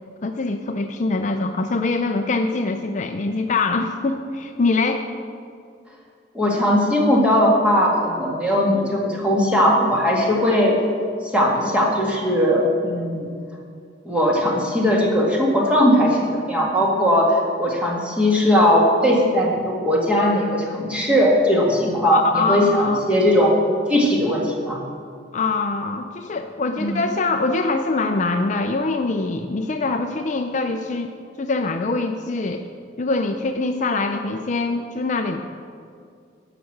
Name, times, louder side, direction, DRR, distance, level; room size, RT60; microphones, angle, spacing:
voice 1, 0.2-5.1 22.1-23.0 25.3-32.7 33.0-35.4, left 3 dB, 40° left, 6 dB, 0.5 m, -23 dB
voice 2, 6.3-10.8 11.2-13.3 14.1-22.2 22.5-23.5 23.9-24.8 26.8-27.0, equal, 5° right, -3 dB, 1.9 m, -19 dB
12.0 x 5.9 x 7.8 m, 2.3 s
head